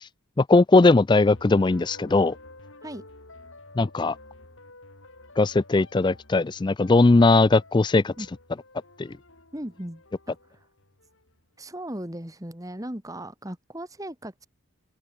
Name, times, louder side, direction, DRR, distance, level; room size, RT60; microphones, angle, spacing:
voice 1, 0.4-2.4 3.8-4.2 5.4-8.1 9.0-9.1, left 3 dB, 20° left, 0.3 m, -19 dB
sound 1, 1.3-11.5, left 2 dB, 65° left, 4.7 m, -50 dB
voice 2, 9.5-10.7 11.6-14.5, right 1 dB, 15° right, 2.1 m, -37 dB
open air
head